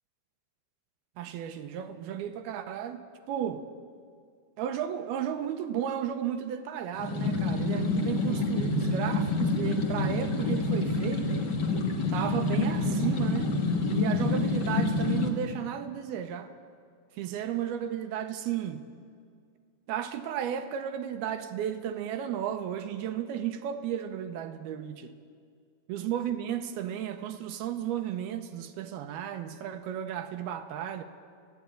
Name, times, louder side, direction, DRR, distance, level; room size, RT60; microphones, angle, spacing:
voice 1, 1.2-3.0 3.3-3.6 4.6-11.4 12.1-13.5 13.9-16.5 17.1-18.9 19.9-25.1 25.9-31.0, right 9 dB, 75° right, 7 dB, 2.5 m, -34 dB
sound 1, 6.9-15.3, left 3 dB, 90° left, 0.9 m, -27 dB
30.0 x 10.5 x 9.0 m, 2.2 s
omnidirectional pair, 5.0 m